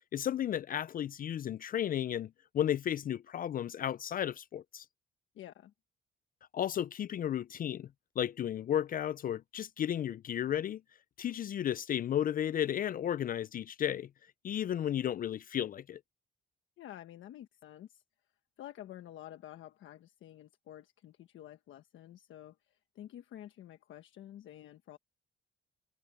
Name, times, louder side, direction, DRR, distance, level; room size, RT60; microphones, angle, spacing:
voice 1, 0.0-4.8 6.5-7.9 8.2-10.8 11.2-14.1 14.4-16.0, left 10 dB, 45° left, 0.4 m, -33 dB
voice 2, 5.3-5.7 16.8-18.0 18.6-25.0, left 12 dB, 75° left, 1.3 m, -50 dB
cardioid pair, 90°, 20 cm